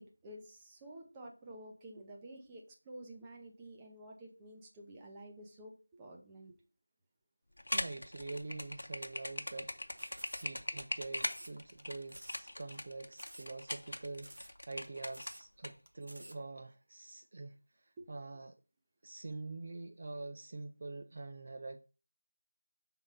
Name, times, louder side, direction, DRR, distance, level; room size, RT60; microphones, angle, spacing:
voice 1, 0.0-6.6 18.0-18.1, right 1 dB, 10° right, 0.7 m, -51 dB
sound 1, 7.6-15.7, left 1 dB, 65° left, 0.9 m, -40 dB
voice 2, 7.7-9.7 10.0-18.6 19.0-21.9, right 3 dB, 35° right, 0.3 m, -45 dB
sound 2, 10.0-10.8 11.2-11.8 12.1-12.5 12.7-12.8 13.2-13.5 13.8-13.9 14.2-14.6 14.8-14.9 15.1-15.5 15.9-16.4, right 1 dB, 90° right, 1.3 m, -52 dB
5.2 x 3.7 x 5.6 m
figure-of-eight pair, 175°, 0 cm